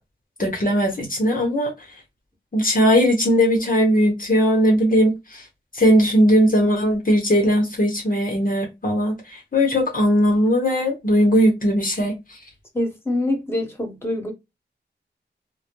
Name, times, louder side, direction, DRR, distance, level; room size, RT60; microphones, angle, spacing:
voice 1, 0.4-1.7 2.5-5.4 5.7-12.2, equal, 50° left, 0.8 m, -19 dB
voice 2, 12.7-14.3, left 1 dB, 15° left, 1.1 m, -25 dB
2.1 x 2.1 x 2.8 m
cardioid pair, 40°, 19 cm